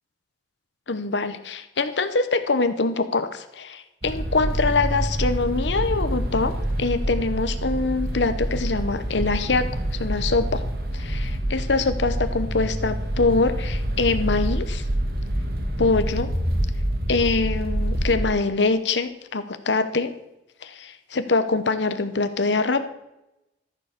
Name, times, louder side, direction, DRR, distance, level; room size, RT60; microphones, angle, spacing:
voice 1, 0.9-10.6 10.9-14.8 15.8-16.3 17.1-20.1 20.6-22.8, left 3 dB, 85° left, 10 dB, 0.9 m, -24 dB
sound 1, 4.0-18.3, right 1 dB, 60° right, 1.6 m, -26 dB
14.0 x 7.0 x 6.6 m, 0.88 s
head